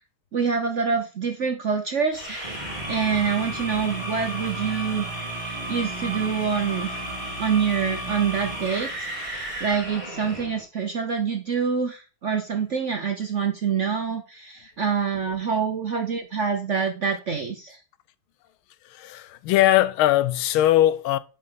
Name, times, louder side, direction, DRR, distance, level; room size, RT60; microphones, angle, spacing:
voice 1, 0.3-2.6 2.9-5.1 5.7-7.0 7.4-17.8, right 6 dB, 55° right, 0.8 m, -26 dB
sound 1, 2.1-10.6, right 1 dB, 20° right, 3.7 m, -33 dB
voice 2, 18.8-21.2, left 14 dB, 85° left, 1.4 m, -20 dB
7.5 x 5.5 x 3.8 m
omnidirectional pair, 2.3 m